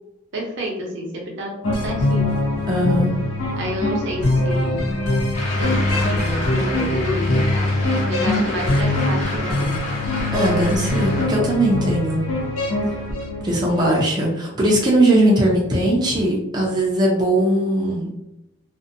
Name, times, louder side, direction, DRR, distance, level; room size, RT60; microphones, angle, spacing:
voice 1, 0.3-2.3 3.6-4.9 5.4-7.8 8.1-9.7, equal, 65° right, -1 dB, 0.7 m, -30 dB
sound 1, 1.6-13.9, left 2 dB, 85° left, 0.5 m, -22 dB
voice 2, 2.7-3.1 10.3-12.2 13.4-18.1, right 1 dB, 20° right, -4 dB, 0.4 m, -19 dB
sound 2, 5.3-11.2, left 1 dB, 35° left, 0.7 m, -31 dB
2.6 x 2.1 x 2.5 m, 0.93 s
head